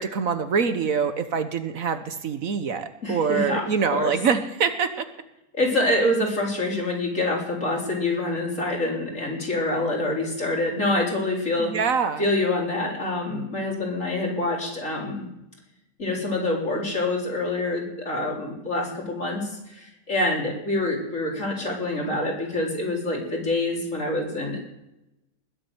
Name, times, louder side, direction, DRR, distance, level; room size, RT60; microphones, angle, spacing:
voice 1, 0.0-5.1 11.6-12.2, right 6 dB, 65° right, 9 dB, 1.4 m, -25 dB
voice 2, 3.0-3.7 3.9-4.1 5.5-11.8 12.2-15.3 16.0-24.6, left 2 dB, 55° left, -2 dB, 4.3 m, -26 dB
20.5 x 7.5 x 8.0 m, 0.89 s
omnidirectional pair, 1.6 m